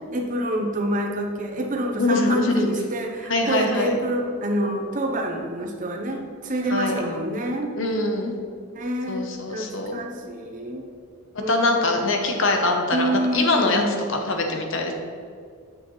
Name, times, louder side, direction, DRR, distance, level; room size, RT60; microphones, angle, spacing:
voice 1, 0.1-7.7 8.7-10.9 11.4-12.0 12.9-13.9, right 1 dB, 35° right, 2 dB, 0.8 m, -27 dB
voice 2, 2.0-2.7 3.3-4.0 6.7-7.0 7.8-8.3 9.1-10.0 11.5-14.9, left 2 dB, 60° left, 3 dB, 0.9 m, -23 dB
7.7 x 6.3 x 3.2 m, 2.1 s
head